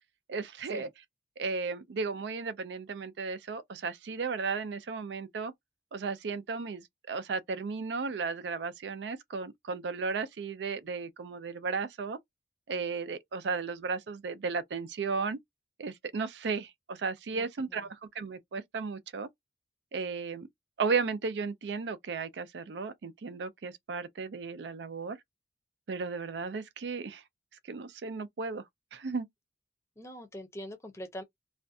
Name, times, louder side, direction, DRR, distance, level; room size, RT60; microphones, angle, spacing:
voice 1, 0.3-0.9 1.4-5.5 5.9-12.2 12.7-15.4 15.8-19.3 19.9-20.5 20.8-25.2 25.9-27.2 27.6-28.6 28.9-29.3, right 4 dB, 85° right, 0.4 m, -35 dB
voice 2, 17.3-17.9 30.0-31.2, equal, 15° left, 0.5 m, -43 dB
2.4 x 2.1 x 2.6 m
head